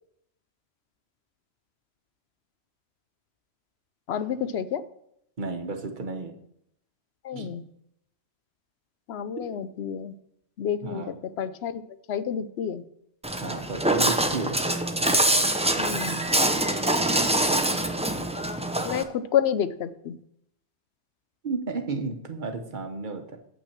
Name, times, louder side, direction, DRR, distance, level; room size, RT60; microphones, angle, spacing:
voice 1, 4.1-4.8 7.2-7.6 9.1-10.1 10.6-11.0 11.4-11.8 12.1-12.8 15.8-16.2 18.8-20.2, left 8 dB, 70° left, 12 dB, 0.9 m, -29 dB
voice 2, 5.4-6.3 7.3-7.5 9.4-9.5 10.8-11.1 13.4-14.6 21.4-23.4, right 3 dB, 45° right, 5 dB, 1.1 m, -33 dB
Walk footsteps, 13.2-19.0, right 1 dB, 10° right, 0.5 m, -24 dB
7.9 x 5.9 x 5.9 m, 0.75 s
omnidirectional pair, 1.1 m